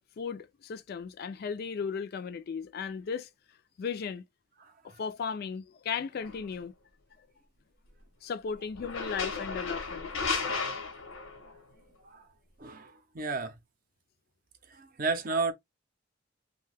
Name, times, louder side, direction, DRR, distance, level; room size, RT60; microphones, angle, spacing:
voice 1, 0.2-3.3 3.8-4.2 5.0-6.7 8.2-10.1, left 6 dB, 50° left, 0.3 m, -36 dB
sound 1, 6.2-6.4 8.7-11.6, left 4 dB, 90° left, 0.8 m, -34 dB
voice 2, 12.6-13.5 14.7-15.5, right 4 dB, 45° right, 0.5 m, -32 dB
2.6 x 2.2 x 3.2 m
head